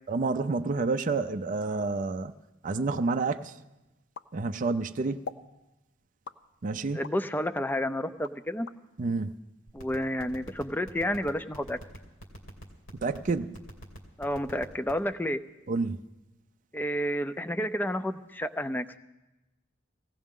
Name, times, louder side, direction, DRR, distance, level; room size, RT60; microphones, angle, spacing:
voice 1, 0.1-2.3 2.6-3.5 4.3-5.2 6.6-7.0 9.0-9.3 13.0-13.5 15.7-16.0, right 3 dB, 40° right, 8 dB, 0.5 m, -29 dB
sound 1, 4.1-4.8 5.2-5.5 6.2-7.2 7.7-8.8, left 5 dB, 60° left, 0.5 m, -43 dB
voice 2, 6.9-8.7 9.7-11.8 14.2-15.4 16.7-19.0, equal, 10° left, 10 dB, 0.5 m, -30 dB
sound 2, 9.7-15.0, right 1 dB, 85° left, 2.6 m, -43 dB
19.5 x 16.0 x 3.7 m, 1.0 s
head